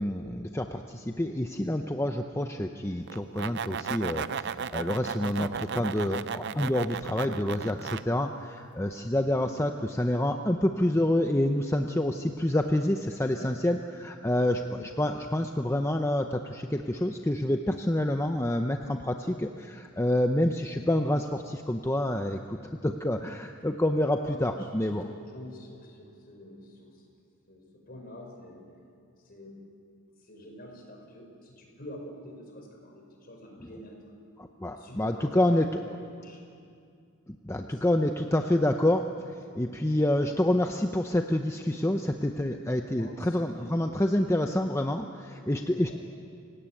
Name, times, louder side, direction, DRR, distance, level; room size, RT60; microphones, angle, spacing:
voice 1, 0.0-9.7 10.0-25.1 34.4-36.0 37.5-39.3 39.6-46.0, left 1 dB, 10° left, 5 dB, 0.7 m, -28 dB
sound 1, 3.1-8.0, right 6 dB, 55° right, 0.5 m, -35 dB
voice 2, 9.3-9.6 13.1-13.5 14.0-14.3 24.0-27.0 27.5-28.7 29.2-29.6 30.2-34.0 34.7-35.8 36.1-36.4 37.6-38.1 39.5-39.8 42.8-44.3 45.3-46.0, left 1 dB, 45° left, 1 dB, 5.5 m, -47 dB
28.0 x 17.0 x 9.0 m, 2.4 s
head